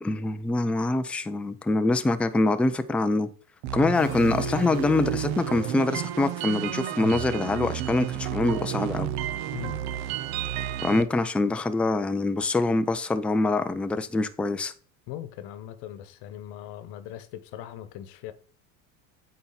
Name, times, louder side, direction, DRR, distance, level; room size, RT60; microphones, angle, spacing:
voice 1, 0.0-3.3 3.7-9.1 10.8-14.7, left 2 dB, 5° left, 0.3 m, -25 dB
sound 1, 3.6-11.0, right 12 dB, 65° right, 0.7 m, -31 dB
sound 2, 3.9-7.6, equal, 80° right, 1.8 m, -42 dB
voice 2, 15.1-18.3, left 12 dB, 65° left, 1.1 m, -40 dB
8.5 x 4.2 x 3.9 m
supercardioid pair, 105°, 43 cm